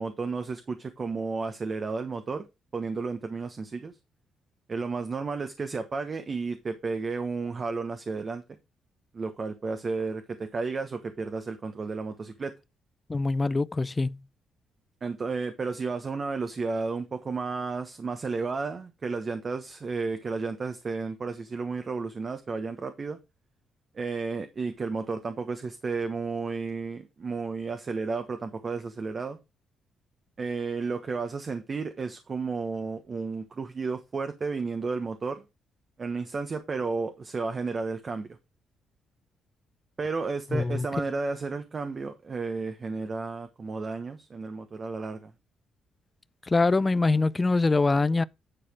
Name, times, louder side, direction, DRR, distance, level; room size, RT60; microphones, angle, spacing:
voice 1, 0.0-2.4 2.7-4.0 4.7-8.4 9.1-12.5 15.0-23.2 23.9-29.4 30.4-35.4 36.0-38.4 40.0-45.3, right 4 dB, 40° right, 1.1 m, -32 dB
voice 2, 13.1-14.2 40.5-40.9 46.5-48.2, left 3 dB, 25° left, 0.4 m, -24 dB
10.0 x 4.2 x 5.0 m
cardioid pair, 90°, 0 cm